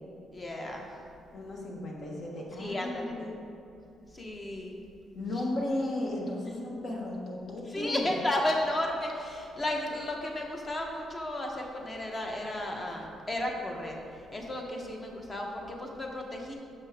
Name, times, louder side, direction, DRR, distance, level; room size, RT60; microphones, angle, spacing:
voice 1, 0.3-0.9 2.6-3.2 4.1-4.8 7.7-14.0 14.3-16.6, left 1 dB, 30° left, 1 dB, 1.0 m, -33 dB
voice 2, 1.3-3.4 5.1-8.1, left 1 dB, 55° left, -1 dB, 1.3 m, -35 dB
6.9 x 5.4 x 3.5 m, 2.6 s
cardioid pair, 90°, 0 cm